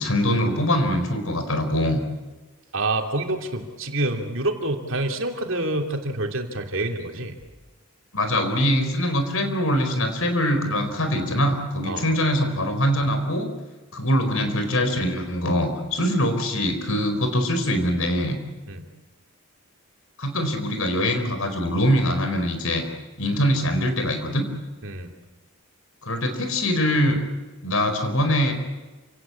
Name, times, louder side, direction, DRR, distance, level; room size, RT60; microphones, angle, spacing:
voice 1, 0.0-2.0 8.1-13.5 13.9-18.4 20.2-22.8 23.2-24.4 26.0-27.2 27.6-28.5, equal, 75° left, 7 dB, 4.6 m, -23 dB
voice 2, 2.7-7.3 11.8-12.1 18.7-18.9 24.8-25.1, right 2 dB, 65° right, 3 dB, 2.9 m, -27 dB
28.5 x 17.5 x 8.6 m, 1.2 s
head